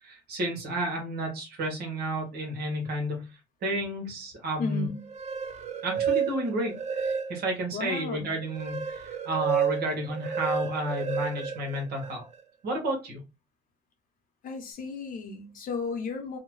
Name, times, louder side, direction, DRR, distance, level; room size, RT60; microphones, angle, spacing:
voice 1, 0.0-4.9 5.8-12.2 12.6-13.2, right 1 dB, 70° right, 1.2 m, -31 dB
voice 2, 4.6-5.0 7.7-8.3 14.4-16.4, left 4 dB, 55° left, 0.8 m, -34 dB
sound 1, 5.0-7.7 8.1-12.4, right 7 dB, 40° right, 0.5 m, -31 dB
2.8 x 2.1 x 3.0 m
cardioid pair, 110°, 17 cm